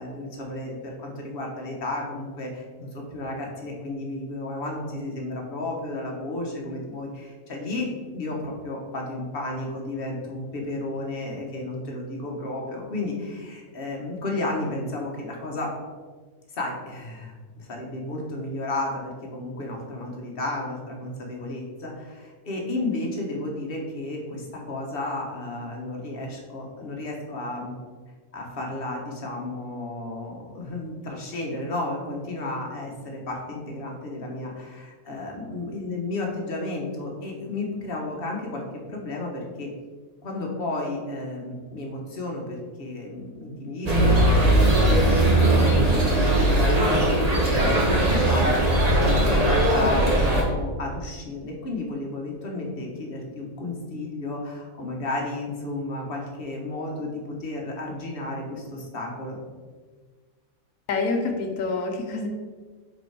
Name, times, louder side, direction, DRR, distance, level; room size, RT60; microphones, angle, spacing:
voice 1, 0.0-7.9 8.1-15.7 16.5-27.7 28.3-38.6 38.9-39.7 40.2-45.9 46.2-48.9 49.2-59.4, left 2 dB, 45° left, -1 dB, 1.3 m, -33 dB
sound 1, 43.9-50.4, right 1 dB, 30° right, 1.1 m, -19 dB
voice 2, 60.9-62.3, left 3 dB, 90° left, 3 dB, 1.2 m, -27 dB
5.0 x 4.5 x 4.7 m, 1.4 s
omnidirectional pair, 1.5 m